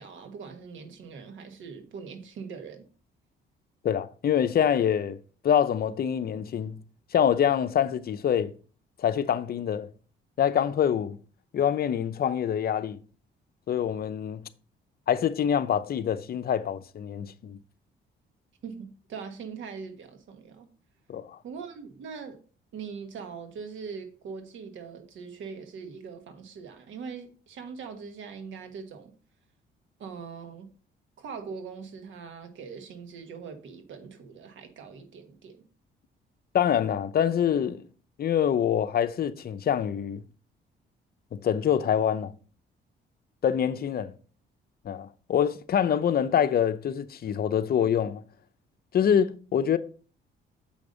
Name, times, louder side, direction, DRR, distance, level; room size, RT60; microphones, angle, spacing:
voice 1, 0.0-2.9 18.6-20.7 21.4-22.4 22.7-29.1 30.0-30.7 31.2-35.6, right 5 dB, 75° right, 1.3 m, -41 dB
voice 2, 3.8-5.2 5.4-6.8 7.1-8.5 9.0-9.9 10.4-11.2 11.5-13.0 13.7-14.4 15.1-17.6 21.1-21.4 36.5-37.8 38.2-40.2 41.3-42.3 43.4-44.1 44.8-48.2 48.9-49.8, left 9 dB, 50° left, 0.6 m, -25 dB
7.0 x 5.3 x 3.9 m
cardioid pair, 90°, 20 cm